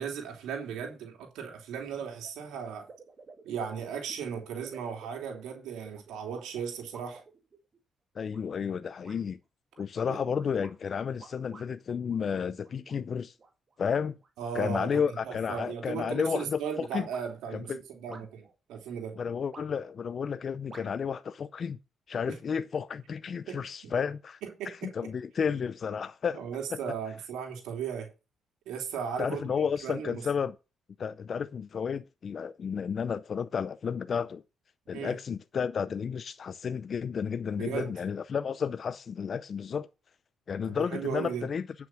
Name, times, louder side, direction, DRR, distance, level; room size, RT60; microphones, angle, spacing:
voice 1, 0.0-2.9 3.4-7.2 10.1-10.2 14.4-14.9 15.2-19.2 22.3-22.4 23.5-23.9 24.6-24.9 26.3-28.1 28.7-29.4 29.8-30.2 34.9-35.1 37.6-37.9 40.7-41.5, right 7 dB, 90° right, 2.9 m, -36 dB
sound 1, 2.2-2.3 2.7-7.8 8.3-8.8 9.0-9.2 9.7-11.7 12.1-13.0 13.4-15.6 16.0-16.2 17.1-17.2 18.1-18.5 19.5-20.0 20.7-20.9, right 4 dB, 40° right, 2.4 m, -52 dB
voice 2, 8.2-9.4 9.8-13.3 13.8-14.2 14.5-17.1 17.5-17.8 18.1-18.2 19.2-21.8 22.1-24.4 24.7-26.4 26.7-26.8 29.2-30.6 31.0-34.4 34.9-39.9 40.5-41.7, left 6 dB, 50° left, 0.5 m, -32 dB
10.0 x 6.0 x 5.8 m
cardioid pair, 90°, 0 cm